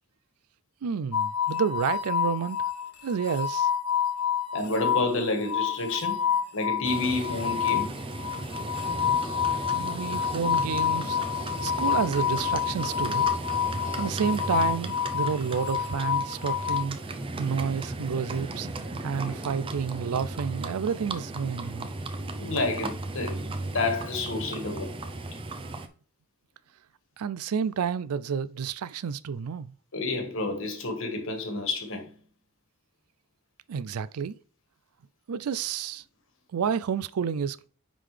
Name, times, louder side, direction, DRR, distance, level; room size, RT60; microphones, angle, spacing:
voice 1, 0.8-2.6 3.0-3.7 9.7-11.2 11.6-13.3 14.0-17.0 17.4-18.7 19.0-21.9 27.2-29.7 33.7-34.3 35.3-36.0 36.5-37.7, right 6 dB, 80° right, 0.4 m, -30 dB
sound 1, 1.1-16.8, left 8 dB, 85° left, 1.2 m, -28 dB
voice 2, 4.5-6.3 6.5-8.0 19.2-19.3 22.4-25.1 29.9-32.1, left 3 dB, 60° left, 1.6 m, -30 dB
Livestock farm animals working animals, 6.8-25.9, right 2 dB, 25° right, 0.5 m, -36 dB
sound 2, 8.9-14.2, left 4 dB, 40° left, 0.9 m, -44 dB
10.0 x 3.8 x 3.3 m
head